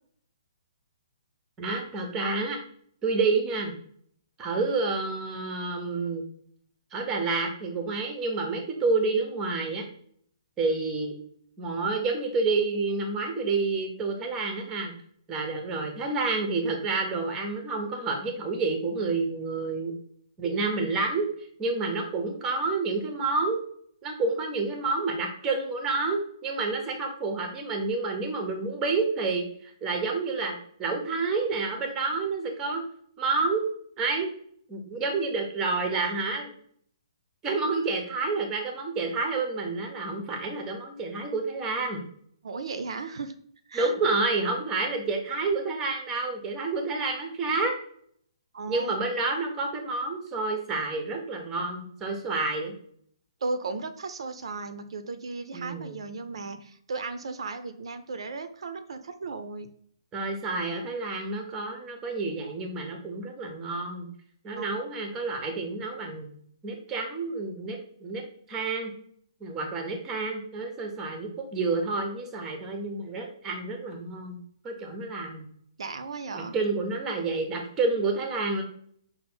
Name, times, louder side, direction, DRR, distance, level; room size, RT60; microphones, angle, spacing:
voice 1, 1.6-2.6 3.0-3.7 4.4-6.2 6.9-9.8 10.6-11.1 11.6-14.9 15.3-19.9 20.4-21.3 21.6-23.6 24.0-30.5 30.8-32.8 33.2-33.6 34.0-34.3 34.7-36.5 37.4-42.0 43.7-47.7 48.7-52.7 55.5-55.9 60.1-64.1 64.4-66.3 66.6-68.2 68.5-68.9 69.4-74.4 74.6-75.5 76.3-78.6, right 3 dB, 10° right, 3 dB, 0.5 m, -29 dB
voice 2, 42.4-43.3 43.7-43.9 48.5-49.0 53.4-59.7 64.6-64.7 75.8-76.5, right 3 dB, 70° right, 9 dB, 0.4 m, -35 dB
5.5 x 2.0 x 4.1 m, 0.63 s
hypercardioid pair, 170°, 3 cm